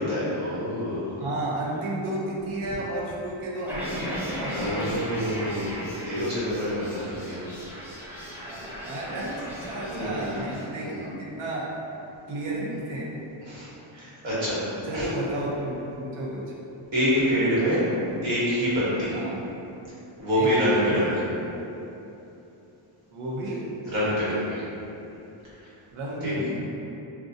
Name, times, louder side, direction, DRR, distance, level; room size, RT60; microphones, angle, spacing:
voice 1, 0.0-1.2 4.5-7.4 9.8-10.4 10.7-11.0 13.4-14.6 14.9-15.1 16.9-17.8 18.2-19.2 20.2-21.1 23.9-24.6 25.6-25.7 26.2-26.3, equal, 65° right, -9 dB, 1.3 m, -26 dB
voice 2, 1.2-5.1 8.5-11.7 12.3-13.1 14.9-16.5 19.1-19.5 20.3-21.3 23.1-23.6 25.9-26.6, right 1 dB, 85° right, -4 dB, 0.8 m, -32 dB
sound 1, 3.7-10.6, equal, 5° right, 1.0 m, -36 dB
3.7 x 2.3 x 2.6 m, 2.9 s
wide cardioid pair, 135°, 49 cm